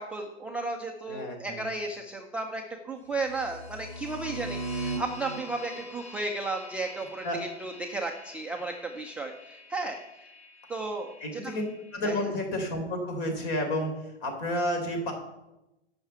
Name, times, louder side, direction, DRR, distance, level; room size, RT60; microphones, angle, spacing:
voice 1, 0.0-10.3 10.7-11.6 12.0-12.2, right 2 dB, 5° right, 1 dB, 0.3 m, -34 dB
voice 2, 1.1-1.6 7.2-7.4 11.2-11.6 11.9-15.1, left 1 dB, 50° left, 4 dB, 3.6 m, -31 dB
sound 1, 3.1-11.9, right 2 dB, 65° left, 3.1 m, -41 dB
9.9 x 5.9 x 7.9 m, 0.95 s
hypercardioid pair, 120°, 35 cm